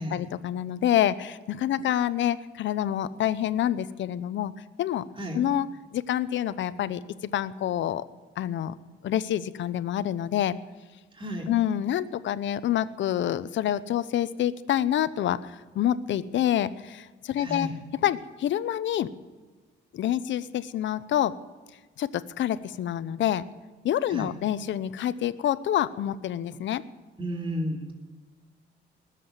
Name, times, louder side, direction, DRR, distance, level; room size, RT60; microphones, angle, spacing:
voice 1, 0.0-4.5 4.8-5.0 5.3-5.7 5.9-8.0 8.4-8.7 9.0-10.6 11.5-19.1 19.9-21.4 22.0-23.4 23.8-26.8, left 11 dB, 70° left, 14 dB, 0.8 m, -27 dB
voice 2, 11.1-11.5 17.4-17.7 24.1-24.3 27.2-27.9, equal, 25° right, 1 dB, 3.1 m, -32 dB
19.5 x 7.7 x 9.0 m, 1.3 s
cardioid pair, 90°, 20 cm